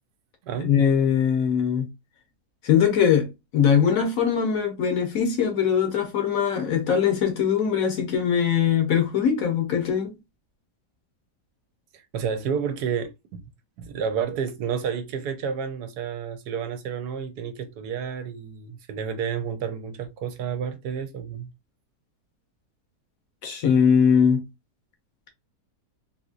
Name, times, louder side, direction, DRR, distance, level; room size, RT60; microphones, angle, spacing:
voice 1, 0.6-1.9 2.6-3.3 3.5-10.1 23.4-24.4, left 7 dB, 60° left, 1.2 m, -21 dB
voice 2, 12.1-13.4 13.8-21.5, right 7 dB, 75° right, 1.2 m, -30 dB
3.7 x 2.9 x 2.4 m
omnidirectional pair, 1.8 m